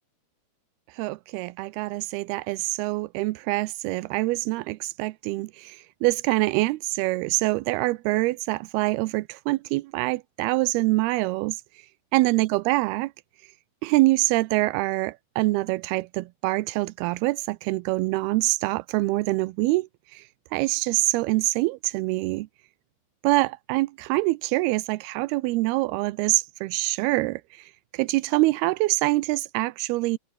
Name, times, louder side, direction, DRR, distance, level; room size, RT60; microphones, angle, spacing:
voice 1, 1.0-11.6 12.1-13.1 13.8-20.2 20.5-22.5 23.2-30.2, right 20 dB, 80° right, 2.4 m, -25 dB
omnidirectional pair, 4.9 m